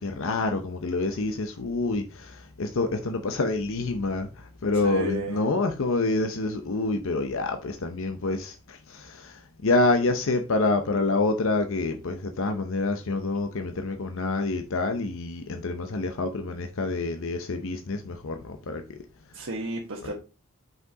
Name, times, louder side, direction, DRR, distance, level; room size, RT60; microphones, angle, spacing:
voice 1, 0.0-4.3 4.6-9.3 9.6-18.8 20.0-20.1, left 3 dB, 65° left, 0.7 m, -27 dB
voice 2, 4.7-5.5 19.3-20.1, right 1 dB, 65° right, 1.2 m, -33 dB
5.9 x 5.4 x 3.9 m
head